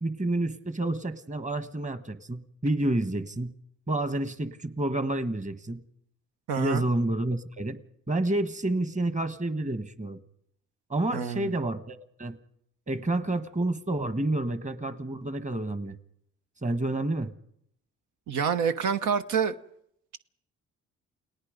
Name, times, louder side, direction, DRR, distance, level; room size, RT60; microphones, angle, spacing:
voice 1, 0.0-3.5 3.9-5.8 6.6-7.8 8.1-10.2 10.9-12.4 12.9-16.0 16.6-17.3, right 2 dB, 25° right, 1.4 m, -29 dB
voice 2, 6.5-6.8 11.1-11.5 18.3-19.5, right 7 dB, 85° right, 1.1 m, -27 dB
29.5 x 18.5 x 5.2 m
cardioid pair, 90°, 30 cm